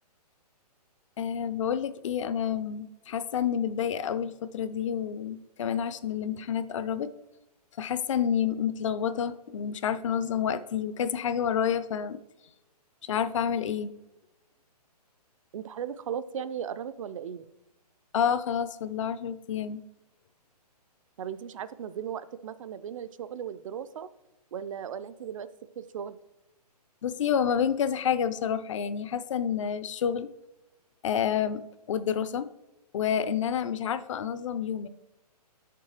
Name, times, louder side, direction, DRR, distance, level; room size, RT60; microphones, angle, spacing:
voice 1, 1.2-7.1 7.8-12.2 13.0-13.9 18.1-19.8 27.0-30.3 31.0-32.5 32.9-34.9, left 8 dB, 50° left, 14 dB, 0.5 m, -29 dB
voice 2, 15.5-17.5 21.2-24.1 24.5-25.5 25.8-26.2, right 8 dB, 50° right, 13 dB, 0.5 m, -37 dB
9.8 x 6.7 x 3.1 m, 0.96 s
hypercardioid pair, 140°, 21 cm